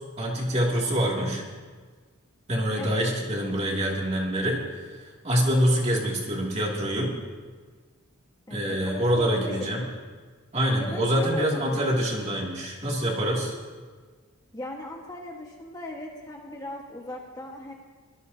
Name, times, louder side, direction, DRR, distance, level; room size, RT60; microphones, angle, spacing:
voice 1, 0.2-1.4 2.5-4.6 5.2-7.2 8.5-9.8 10.5-13.5, equal, 30° right, -2 dB, 2.4 m, -25 dB
voice 2, 2.7-3.1 8.5-9.9 10.8-12.0 14.5-17.7, left 1 dB, 15° left, -1 dB, 1.4 m, -38 dB
23.5 x 16.5 x 2.8 m, 1.5 s
head